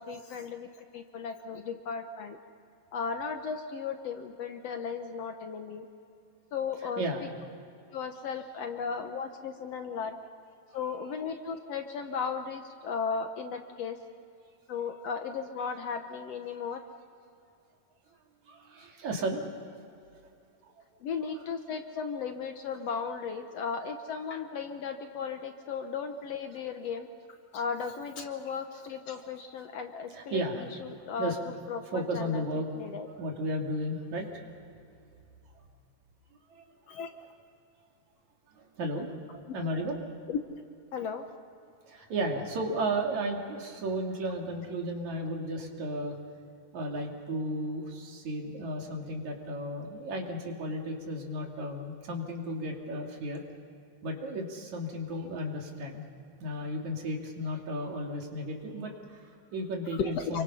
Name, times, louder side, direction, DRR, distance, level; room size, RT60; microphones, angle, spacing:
voice 1, 0.0-2.4 2.9-5.9 6.5-7.3 7.9-10.2 10.7-14.0 14.7-16.8 21.0-27.1 27.5-33.1 36.9-37.1 39.5-39.6 40.3-40.4 40.9-41.3 59.9-60.4, left 6 dB, 65° left, 6 dB, 1.8 m, -36 dB
voice 2, 6.8-7.2 10.7-11.1 18.5-19.4 21.2-21.4 23.8-23.9 29.1-29.3 30.1-30.8 31.2-31.4 31.8-32.7 33.2-34.4 36.5-36.6 38.5-40.0 41.9-46.2 46.7-53.4 54.0-56.1 56.4-60.4, right 1 dB, 65° right, 1 dB, 3.8 m, -34 dB
28.5 x 24.0 x 5.6 m, 2.5 s
omnidirectional pair, 3.6 m